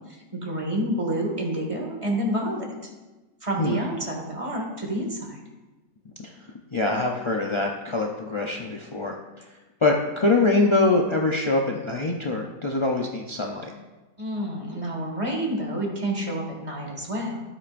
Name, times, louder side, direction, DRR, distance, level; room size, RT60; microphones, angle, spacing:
voice 1, 0.1-2.7 3.4-5.4 14.2-17.4, right 1 dB, 20° right, 0 dB, 1.8 m, -28 dB
voice 2, 6.7-9.2 9.8-13.7, left 2 dB, 50° left, -1 dB, 0.3 m, -24 dB
13.0 x 8.4 x 2.6 m, 1.2 s
omnidirectional pair, 1.6 m